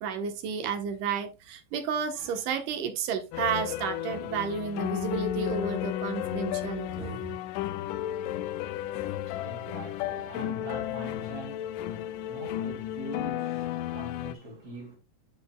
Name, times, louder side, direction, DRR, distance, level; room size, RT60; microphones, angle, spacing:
voice 1, 0.0-7.4, right 6 dB, 75° right, 2.7 m, -32 dB
sound 1, 3.3-14.3, left 12 dB, 80° left, 2.1 m, -33 dB
voice 2, 8.9-15.0, right 1 dB, 50° right, 4.3 m, -43 dB
10.5 x 6.3 x 2.3 m
omnidirectional pair, 3.9 m